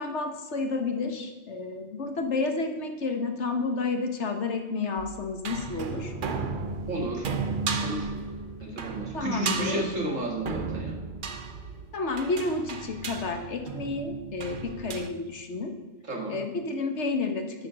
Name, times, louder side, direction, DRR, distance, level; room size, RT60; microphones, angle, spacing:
voice 1, 0.0-6.1 9.1-9.8 11.9-15.7 16.3-17.7, left 3 dB, 60° left, 5 dB, 1.4 m, -30 dB
sound 1, 5.0-15.1, right 4 dB, 45° right, 0.8 m, -34 dB
sound 2, 6.0-13.2, equal, 10° left, 2.1 m, -52 dB
voice 2, 6.9-7.3 7.8-8.1 8.6-10.9 16.0-16.4, right 1 dB, 70° right, 0 dB, 2.4 m, -32 dB
11.5 x 6.9 x 6.3 m, 1.1 s
omnidirectional pair, 1.4 m